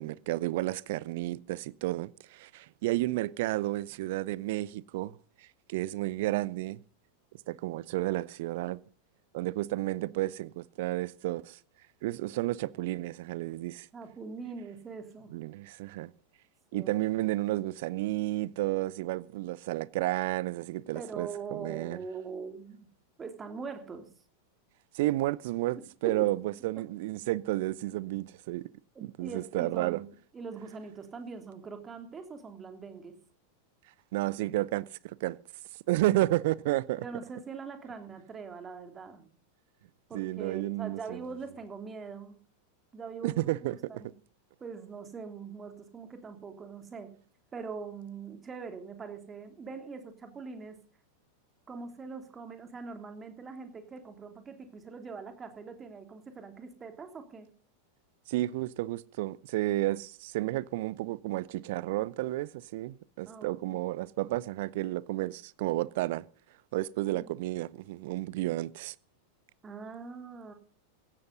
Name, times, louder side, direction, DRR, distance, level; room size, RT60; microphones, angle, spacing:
voice 1, 0.0-5.2 5.7-6.8 7.5-8.8 9.3-11.6 12.0-13.9 15.3-16.1 16.7-22.0 24.9-28.7 29.0-30.0 34.1-35.4 35.9-37.0 40.1-41.2 43.2-43.8 58.3-66.2 66.7-68.9, right 17 dB, 50° right, 0.6 m, -31 dB
voice 2, 13.9-15.4 16.7-16.9 20.9-22.9 23.2-24.1 26.0-26.3 28.9-33.2 37.0-39.3 40.1-42.4 42.9-44.1 44.6-47.1 47.5-50.8 51.7-57.5 63.3-63.8 67.1-67.3 69.6-70.5, right 5 dB, 20° right, 3.1 m, -42 dB
16.5 x 13.5 x 4.0 m
figure-of-eight pair, 90°, 0 cm